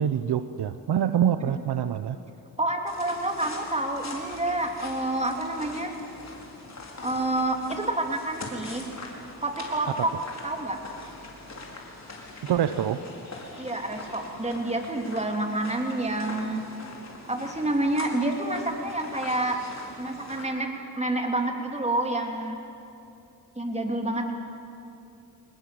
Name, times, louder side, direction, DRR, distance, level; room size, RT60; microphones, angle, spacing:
voice 1, 0.0-2.2 9.9-10.0 12.4-13.0, right 9 dB, 70° right, 11 dB, 0.9 m, -25 dB
voice 2, 2.6-5.9 7.0-8.8 9.4-10.1 10.4-10.8 13.6-16.6 17.3-19.6 20.0-20.7 21.0-22.6 23.5-24.3, right 2 dB, 15° right, 3 dB, 3.4 m, -28 dB
sound 1, 2.9-20.4, left 2 dB, 40° left, 4.7 m, -42 dB
25.5 x 20.0 x 7.7 m, 2.7 s
cardioid pair, 70°, 42 cm